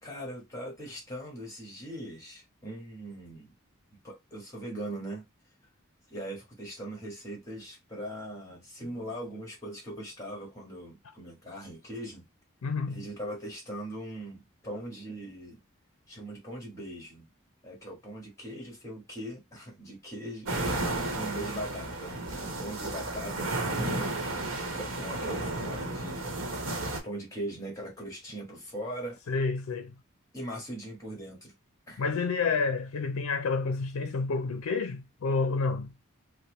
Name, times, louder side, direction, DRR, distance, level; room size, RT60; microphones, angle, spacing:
voice 1, 0.0-3.5 4.0-5.2 6.1-12.2 12.9-15.6 16.1-17.3 17.6-26.6 27.0-29.2 30.3-31.5 31.9-32.0, right 1 dB, 15° left, 1.6 m, -40 dB
voice 2, 12.6-13.0 29.3-29.9 32.0-35.9, left 4 dB, 85° left, 0.4 m, -29 dB
sound 1, 20.5-27.0, right 2 dB, 75° right, 1.0 m, -33 dB
4.2 x 2.1 x 3.0 m
head